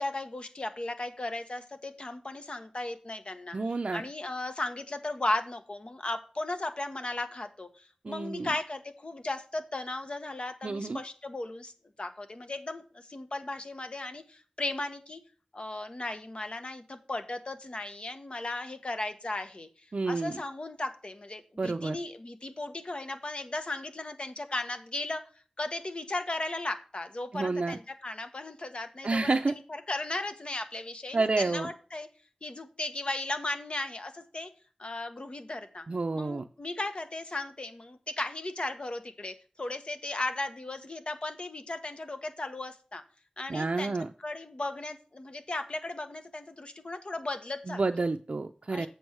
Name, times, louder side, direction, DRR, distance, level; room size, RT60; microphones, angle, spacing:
voice 1, 0.0-3.6 3.9-11.7 12.0-15.2 15.5-19.7 20.0-25.2 25.6-32.1 32.4-34.5 34.8-35.8 36.2-43.0 43.4-43.9 44.2-47.8 48.7-48.9, left 2 dB, 50° left, 8 dB, 1.3 m, -36 dB
voice 2, 3.5-4.0 8.0-8.5 10.6-11.0 19.9-20.4 21.6-22.0 27.3-27.8 29.0-29.5 31.1-31.7 35.9-36.4 43.5-44.1 47.7-48.9, right 3 dB, 60° right, 6 dB, 0.5 m, -29 dB
7.9 x 6.3 x 4.6 m, 0.38 s
wide cardioid pair, 70°, 2 cm